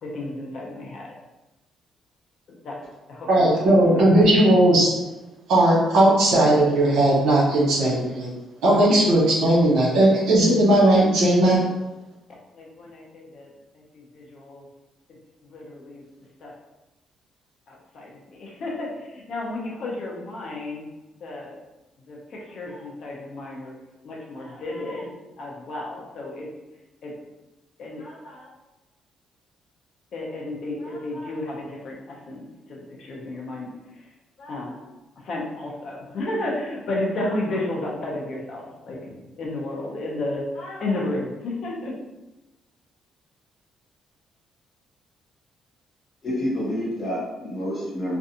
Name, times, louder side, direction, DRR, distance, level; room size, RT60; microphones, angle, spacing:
voice 1, 0.0-1.1 2.6-2.8 3.1-4.1 12.5-13.5 13.7-14.7 15.4-16.0 16.4-16.5 17.7-20.9 21.2-21.6 22.1-23.7 24.0-25.1 25.4-26.5 27.0-27.1 27.8-28.5 30.1-34.1 34.4-34.9 35.2-42.0, left 2 dB, 55° left, -2 dB, 0.6 m, -32 dB
voice 2, 3.3-4.9 5.5-8.3 8.6-11.6, right 1 dB, 80° right, -6 dB, 1.0 m, -17 dB
voice 3, 46.2-48.2, equal, 35° left, -6 dB, 1.0 m, -28 dB
2.5 x 2.3 x 2.7 m, 1.0 s
cardioid pair, 145°, 0 cm